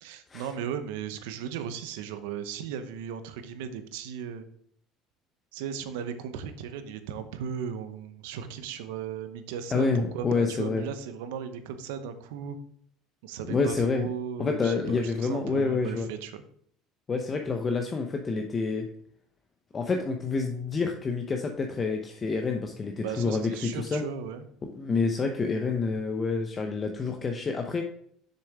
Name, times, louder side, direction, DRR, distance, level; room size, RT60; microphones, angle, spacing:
voice 1, 0.0-4.5 5.5-12.6 13.2-16.4 23.0-24.4, right 8 dB, 85° right, 10 dB, 0.8 m, -36 dB
voice 2, 9.7-10.8 13.5-14.1 14.4-16.1 17.1-18.9 19.7-24.0 24.8-27.8, left 4 dB, 30° left, 3 dB, 0.8 m, -28 dB
6.8 x 6.6 x 3.5 m, 0.64 s
supercardioid pair, 85°, 0 cm